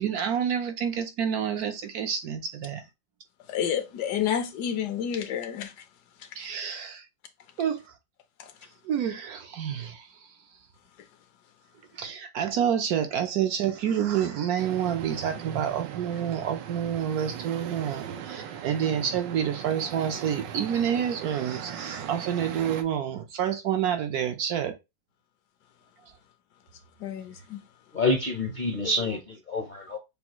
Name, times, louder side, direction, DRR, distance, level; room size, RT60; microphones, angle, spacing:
voice 1, 0.0-2.8 6.3-7.1 7.6-7.9 8.8-10.1 11.9-24.8, right 9 dB, 70° right, 1.0 m, -28 dB
voice 2, 3.5-5.8 6.2-6.5 8.4-8.5 11.0-11.1 27.0-27.6, left 9 dB, 70° left, 1.2 m, -30 dB
sound 1, 14.6-22.8, right 9 dB, 85° right, 1.3 m, -39 dB
voice 3, 27.9-30.0, left 2 dB, 40° left, 0.6 m, -27 dB
6.9 x 2.4 x 3.0 m
omnidirectional pair, 1.9 m